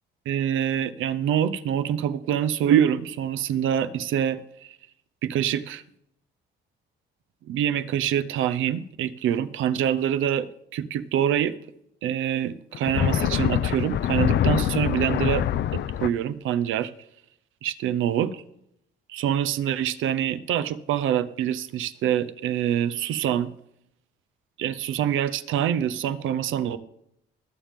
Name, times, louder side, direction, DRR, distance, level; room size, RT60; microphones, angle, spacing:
voice 1, 0.3-4.8 5.2-5.8 7.5-11.5 12.0-15.5 15.7-16.9 17.6-18.3 19.1-23.5 24.6-26.8, right 10 dB, 85° right, 12 dB, 0.7 m, -25 dB
sound 1, 12.7-16.1, left 11 dB, 60° left, 0.5 m, -24 dB
19.5 x 7.3 x 3.7 m, 0.77 s
cardioid pair, 90°, 20 cm